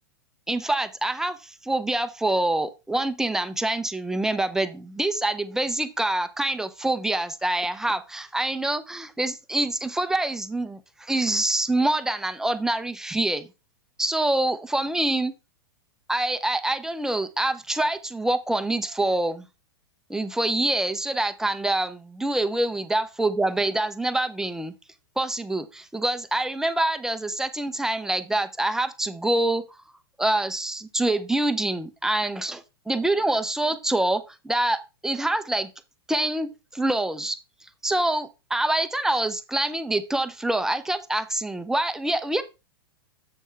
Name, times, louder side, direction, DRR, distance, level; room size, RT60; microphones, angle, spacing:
voice 1, 0.5-13.5 14.0-15.3 16.1-19.5 20.1-24.7 25.2-29.6 30.2-35.7 36.1-37.4 37.8-42.4, right 2 dB, 5° right, 11 dB, 0.6 m, -26 dB
7.7 x 6.4 x 3.2 m, 0.27 s
figure-of-eight pair, 100°, 13 cm